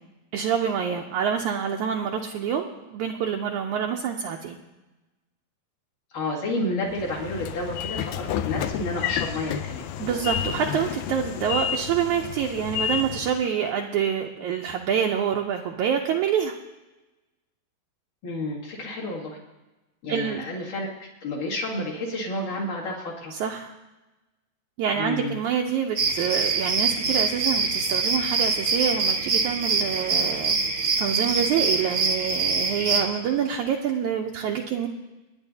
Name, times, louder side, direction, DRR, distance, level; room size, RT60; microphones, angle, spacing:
voice 1, 0.3-4.6 10.0-16.5 20.1-20.4 23.4-23.7 24.8-30.6 31.0-34.9, right 8 dB, 80° right, 1 dB, 1.8 m, -26 dB
voice 2, 6.1-9.9 18.2-19.4 20.0-20.9 21.2-23.3 25.0-25.4, left 1 dB, 65° left, -5 dB, 3.6 m, -30 dB
Train / Sliding door, 6.9-13.4, left 9 dB, 80° left, 2.1 m, -30 dB
sound 1, 26.0-33.0, right 4 dB, 55° right, 1.4 m, -24 dB
29.0 x 9.7 x 2.8 m, 1.1 s
omnidirectional pair, 4.2 m